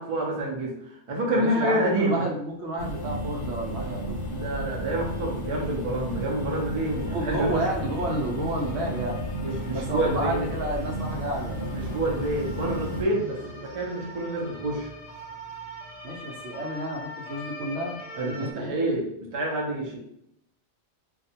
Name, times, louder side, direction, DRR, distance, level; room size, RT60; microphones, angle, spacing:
voice 1, 0.0-2.3 4.3-7.6 9.4-10.4 11.7-14.9 18.1-20.0, right 1 dB, 45° right, -1 dB, 0.5 m, -28 dB
voice 2, 1.3-4.2 7.1-9.2 9.7-11.6 16.0-18.8, right 1 dB, 75° right, -1 dB, 0.9 m, -31 dB
sound 1, 2.8-13.0, equal, 80° left, 1.0 m, -33 dB
sound 2, 6.6-18.5, equal, 50° left, 0.5 m, -43 dB
2.3 x 2.1 x 2.7 m, 0.73 s
omnidirectional pair, 1.2 m